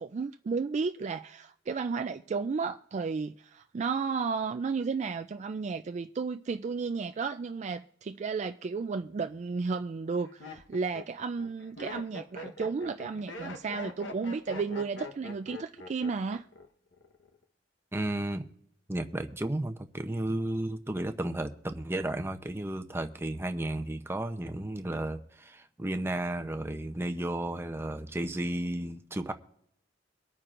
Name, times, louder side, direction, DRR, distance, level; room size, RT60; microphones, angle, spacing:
voice 1, 0.0-16.4, right 5 dB, 35° right, 0.3 m, -33 dB
Laughter, 9.0-9.4 10.0-16.7 16.9-17.4, left 2 dB, 70° left, 1.1 m, -43 dB
voice 2, 17.9-18.4 18.9-29.3, right 1 dB, 15° right, 0.7 m, -33 dB
23.5 x 9.0 x 2.5 m
head